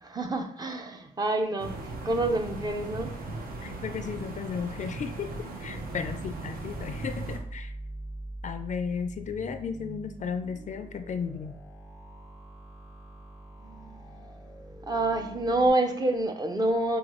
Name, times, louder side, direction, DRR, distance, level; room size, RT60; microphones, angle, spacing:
voice 1, 0.0-3.6 13.6-14.0 14.8-17.0, right 2 dB, 25° right, 0.5 m, -28 dB
sound 1, 1.6-7.4, right 2 dB, 75° right, 0.7 m, -38 dB
voice 2, 3.6-7.7 8.4-11.6, left 6 dB, 55° left, 0.4 m, -35 dB
sound 2, 5.7-15.7, right 1 dB, 45° right, 1.5 m, -44 dB
6.2 x 2.3 x 3.0 m
cardioid pair, 90°, 15 cm